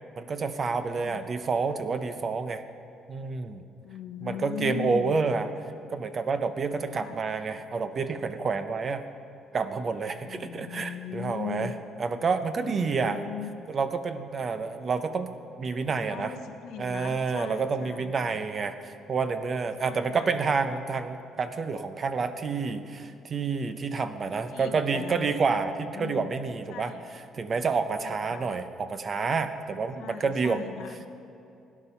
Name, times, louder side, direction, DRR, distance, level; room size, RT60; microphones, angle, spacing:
voice 1, 0.2-2.6 3.1-3.6 4.2-5.5 5.9-9.0 9.5-11.7 12.0-13.2 13.7-15.3 15.6-16.3 16.8-26.9 27.3-30.6, right 4 dB, 35° right, 9 dB, 0.8 m, -29 dB
voice 2, 3.8-5.2 6.9-7.2 10.2-11.7 12.6-13.5 14.5-14.7 15.8-18.4 19.8-20.4 24.3-25.3 25.7-26.3 26.7-27.1 28.0-28.5 30.0-31.0, left 8 dB, 80° left, 5 dB, 1.1 m, -39 dB
17.0 x 11.0 x 5.6 m, 2.6 s
cardioid pair, 130°, 0 cm